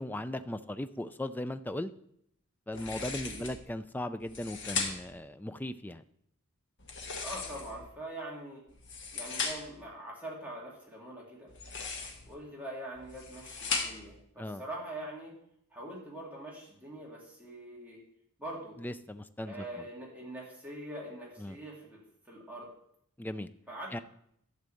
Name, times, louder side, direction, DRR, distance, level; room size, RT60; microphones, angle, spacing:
voice 1, 0.0-1.9 2.7-6.0 14.4-14.6 18.8-19.6 21.4-21.6 23.2-23.5 23.9-24.0, left 1 dB, 10° left, 12 dB, 0.3 m, -37 dB
sound 1, 2.7-3.6 4.2-5.2 6.8-7.9 8.7-9.8 11.5-12.3 12.9-14.2, left 4 dB, 55° left, 1.6 m, -37 dB
voice 2, 7.2-8.6 9.1-11.5 12.3-15.3 15.7-18.0 18.4-18.8 19.5-22.7 23.7-24.0, right 1 dB, 5° right, -5 dB, 2.1 m, -43 dB
12.0 x 4.0 x 7.7 m, 0.71 s
head